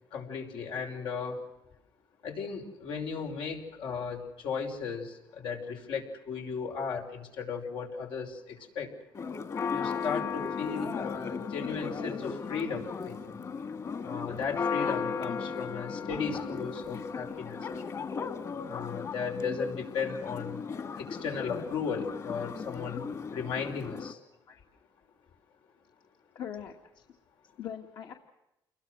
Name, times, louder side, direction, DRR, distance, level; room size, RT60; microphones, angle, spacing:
voice 1, 0.1-1.4 2.2-8.9 9.7-13.4 14.0-17.7 18.6-20.6 21.0-24.2, left 5 dB, 85° left, 3 dB, 5.6 m, -36 dB
Church bell, 9.1-24.1, left 5 dB, 40° left, 2.2 m, -36 dB
voice 2, 26.3-27.0 27.6-28.1, left 9 dB, 65° left, 1 dB, 2.3 m, -43 dB
29.5 x 22.0 x 6.4 m, 0.91 s
cardioid pair, 145°, 8 cm